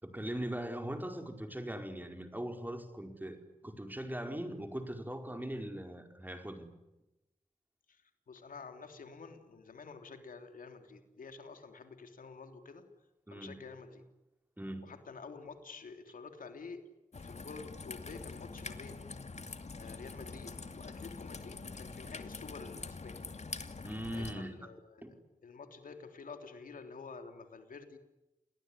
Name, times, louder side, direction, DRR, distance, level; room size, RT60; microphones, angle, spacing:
voice 1, 0.0-6.7 13.3-13.6 14.6-14.9 23.8-24.6 25.0-25.1, right 1 dB, 15° right, 6 dB, 4.9 m, -40 dB
voice 2, 8.3-12.8 13.3-14.0 14.8-16.8 17.2-19.1 19.8-23.3 24.1-28.0, left 4 dB, 85° left, 7 dB, 3.3 m, -49 dB
Raindrop / Trickle dribble, 17.1-24.3, left 4 dB, 55° left, 2.5 m, -45 dB
29.5 x 20.0 x 9.9 m, 0.97 s
cardioid pair, 60°, 14 cm